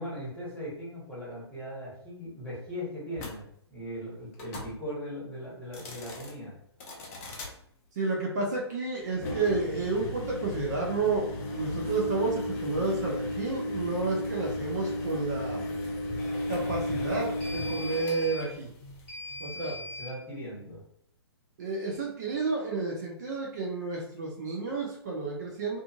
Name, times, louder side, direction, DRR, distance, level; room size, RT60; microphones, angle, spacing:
voice 1, 0.0-6.6 20.0-20.8, equal, 5° left, -9 dB, 1.1 m, -39 dB
sound 1, 3.2-3.3 4.3-4.7 5.6-6.3 6.8-7.5 9.1-20.1, left 1 dB, 30° left, 0.5 m, -34 dB
voice 2, 8.0-11.3 11.5-15.6 16.5-18.7 19.4-19.7 21.6-25.8, right 3 dB, 40° right, -2 dB, 0.5 m, -31 dB
2.6 x 2.4 x 2.4 m, 0.69 s
figure-of-eight pair, 125°, 14 cm